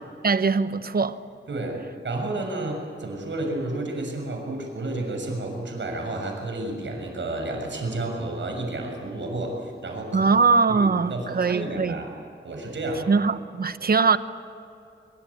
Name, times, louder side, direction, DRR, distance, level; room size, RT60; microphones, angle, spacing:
voice 1, 0.2-1.2 10.1-12.0 13.1-14.2, right 4 dB, 50° right, 1.0 m, -21 dB
voice 2, 1.5-10.4 10.7-12.1 12.4-13.1, right 2 dB, 65° right, 6.8 m, -31 dB
24.5 x 23.0 x 8.6 m
wide cardioid pair, 115°, 20 cm